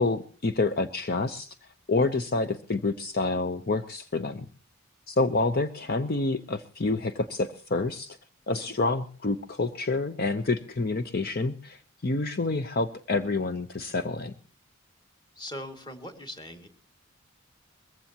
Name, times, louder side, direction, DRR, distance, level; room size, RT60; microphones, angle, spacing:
voice 1, 0.0-4.5 5.1-8.2 8.5-14.3, left 3 dB, 45° left, 9 dB, 0.7 m, -28 dB
voice 2, 15.3-16.7, left 1 dB, 20° left, 5 dB, 2.2 m, -40 dB
22.0 x 15.0 x 2.9 m, 0.43 s
head